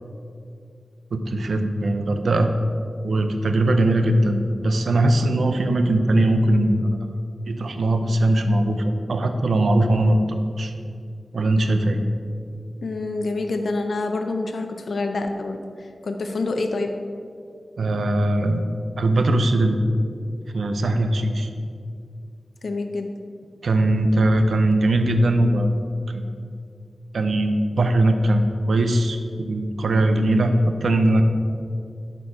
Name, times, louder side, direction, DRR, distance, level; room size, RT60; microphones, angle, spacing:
voice 1, 1.1-2.5 3.0-6.8 7.5-10.7 11.3-12.0 17.8-18.6 19.0-19.8 20.5-21.5 23.6-25.7 26.1-26.2 27.1-31.2, right 1 dB, 90° right, 7 dB, 0.6 m, -20 dB
voice 2, 12.8-16.9 22.6-23.1, left 3 dB, 80° left, 5 dB, 0.5 m, -27 dB
11.0 x 4.5 x 4.7 m, 2.3 s
wide cardioid pair, 70°, 0 cm